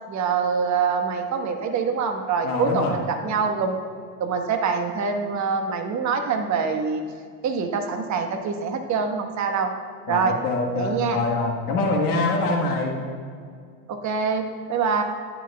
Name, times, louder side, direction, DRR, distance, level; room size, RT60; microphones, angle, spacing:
voice 1, 0.1-3.8 4.2-7.0 7.4-9.7 10.1-10.3 10.7-11.2 13.9-15.0, right 5 dB, 40° right, 5 dB, 1.3 m, -25 dB
voice 2, 2.4-3.0 10.1-12.9, left 2 dB, 85° left, 0 dB, 1.5 m, -24 dB
13.5 x 10.5 x 2.3 m, 2.1 s
hypercardioid pair, 85°, 45 cm